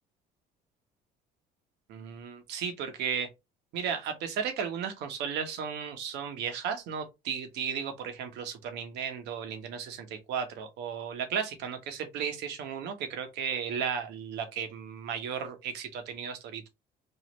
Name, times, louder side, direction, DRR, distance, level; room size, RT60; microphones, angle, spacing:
voice 1, 1.9-3.3 3.7-16.6, right 7 dB, 85° right, 1.1 m, -34 dB
3.2 x 2.7 x 4.0 m
cardioid pair, 110°, 17 cm